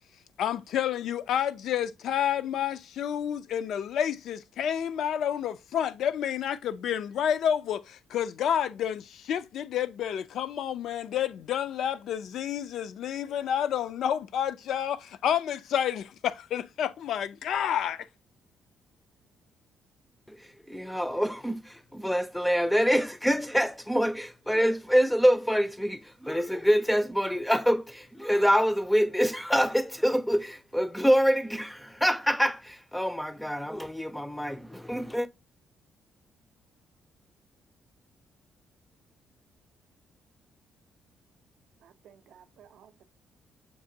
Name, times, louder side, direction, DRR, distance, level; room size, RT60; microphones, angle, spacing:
voice 1, 0.4-18.1, left 9 dB, 75° left, 0.3 m, -29 dB
voice 2, 20.7-35.3, equal, 5° left, 0.4 m, -26 dB
voice 3, 41.8-43.1, right 9 dB, 75° right, 0.4 m, -56 dB
6.6 x 2.5 x 2.7 m
cardioid pair, 90°, 0 cm